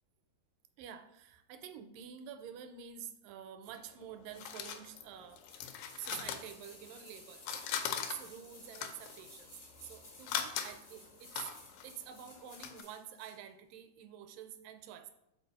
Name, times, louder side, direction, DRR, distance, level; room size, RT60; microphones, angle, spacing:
voice 1, 0.8-7.6 8.1-11.5 11.8-15.1, right 9 dB, 80° right, 8 dB, 2.1 m, -48 dB
sound 1, 3.7-7.1 7.4-12.8, left 9 dB, 90° left, 2.3 m, -41 dB
sound 2, 5.5-13.4 13.7-13.8, left 2 dB, 70° left, 0.6 m, -56 dB
5.2 x 4.0 x 5.2 m, 0.83 s
omnidirectional pair, 4.0 m